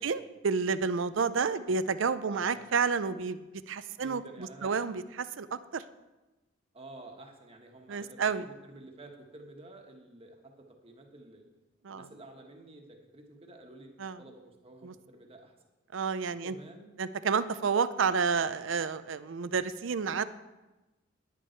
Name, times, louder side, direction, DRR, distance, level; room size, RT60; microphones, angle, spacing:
voice 1, 0.0-3.4 3.7-4.2 4.6-5.8 7.9-8.5 11.8-12.1 14.0-14.2 14.8-14.9 15.9-16.6 17.0-20.2, right 5 dB, 75° right, 14 dB, 0.5 m, -30 dB
voice 2, 2.3-2.7 3.9-4.7 6.7-11.5 11.9-15.5 16.3-16.9, right 2 dB, 30° right, 2 dB, 1.4 m, -51 dB
11.0 x 9.2 x 4.5 m, 1.1 s
head